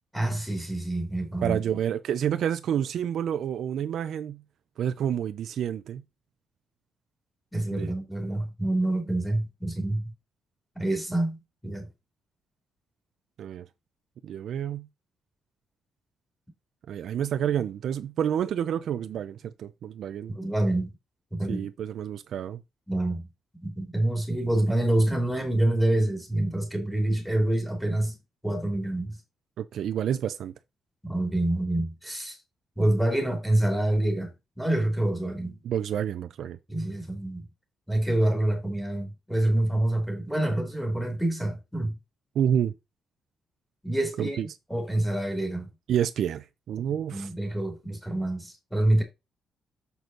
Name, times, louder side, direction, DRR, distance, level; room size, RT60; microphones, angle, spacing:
voice 1, 0.1-1.6 7.5-10.0 10.7-11.4 11.6-11.9 20.3-20.9 21.3-21.7 22.9-23.3 23.6-28.2 28.4-29.2 31.0-32.4 32.8-34.3 34.6-35.6 36.7-37.4 37.9-41.9 43.8-44.4 44.7-45.7 47.1-49.0, right 1 dB, ahead, 2.9 m, -26 dB
voice 2, 1.4-4.4 4.8-6.0 7.7-7.9 13.4-13.7 14.2-14.9 16.9-20.4 21.5-22.6 29.6-30.5 35.6-36.6 42.3-42.7 44.2-44.5 45.9-47.3, right 9 dB, 60° right, 0.6 m, -29 dB
6.9 x 6.3 x 3.9 m
cardioid pair, 160°, 0 cm